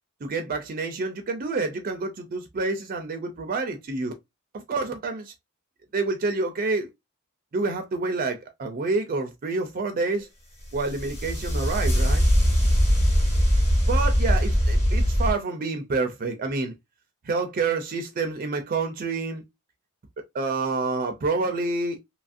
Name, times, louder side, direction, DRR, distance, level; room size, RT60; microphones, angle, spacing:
voice 1, 0.2-4.2 4.5-5.3 5.9-6.9 7.5-10.3 10.7-12.2 13.9-16.7 17.2-19.4 20.3-22.0, right 3 dB, 40° right, 0.4 m, -28 dB
sound 1, 10.7-15.3, equal, 30° left, 1.3 m, -21 dB
2.9 x 2.4 x 2.5 m
head